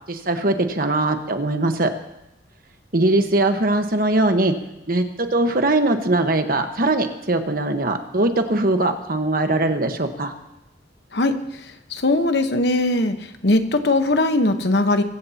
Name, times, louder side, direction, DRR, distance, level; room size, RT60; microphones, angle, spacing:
voice 1, 0.1-1.9 2.9-4.5 4.9-10.3, right 2 dB, 55° right, 6 dB, 1.4 m, -21 dB
voice 2, 11.9-13.2 13.4-15.0, left 2 dB, 65° left, 7 dB, 1.2 m, -19 dB
23.5 x 15.5 x 2.9 m, 0.92 s
head